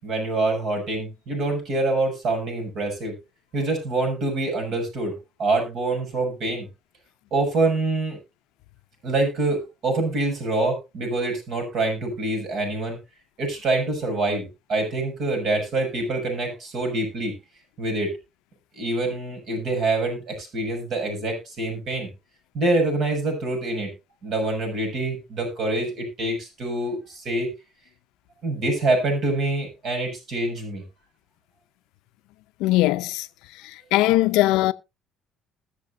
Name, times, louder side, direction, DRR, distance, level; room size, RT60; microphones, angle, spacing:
voice 1, 0.0-3.1 3.5-5.1 5.4-6.7 7.3-8.2 9.0-13.0 13.4-17.3 17.8-18.1 18.8-22.1 22.5-23.9 24.2-27.5 28.4-30.8, right 2 dB, 60° right, 6.4 m, -25 dB
voice 2, 32.6-33.3 33.9-34.7, left 17 dB, 85° left, 0.6 m, -19 dB
20.5 x 6.8 x 2.6 m
cardioid pair, 100°, 0 cm